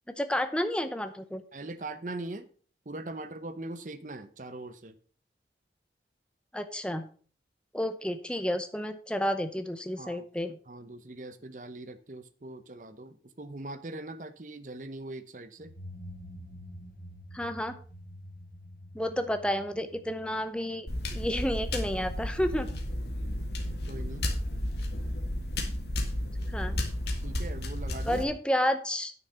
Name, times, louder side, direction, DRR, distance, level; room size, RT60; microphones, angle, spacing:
voice 1, 0.2-1.4 6.5-7.1 7.7-10.6 17.3-17.7 18.9-22.7 26.5-26.7 28.0-29.1, equal, 5° left, 8 dB, 0.7 m, -31 dB
voice 2, 1.5-2.5 2.9-4.9 10.0-10.3 10.7-15.7 23.9-24.3 27.2-28.2, right 2 dB, 45° right, 11 dB, 0.8 m, -41 dB
sound 1, 15.6-22.2, equal, 50° left, 1.1 m, -48 dB
sound 2, 20.9-28.2, left 1 dB, 70° left, 2.0 m, -32 dB
9.4 x 6.5 x 5.6 m, 0.42 s
head